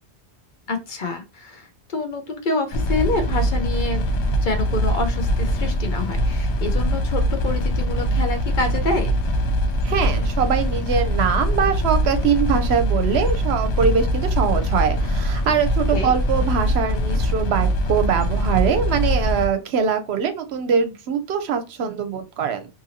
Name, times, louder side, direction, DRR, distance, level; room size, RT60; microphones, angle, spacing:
voice 1, 0.7-4.0 4.4-9.2 15.9-16.1, left 2 dB, 55° left, 0.7 m, -27 dB
sound 1, 2.7-19.5, equal, 90° left, 0.9 m, -22 dB
voice 2, 9.8-22.7, right 6 dB, 75° right, 0.8 m, -22 dB
2.7 x 2.6 x 2.7 m
omnidirectional pair, 1.1 m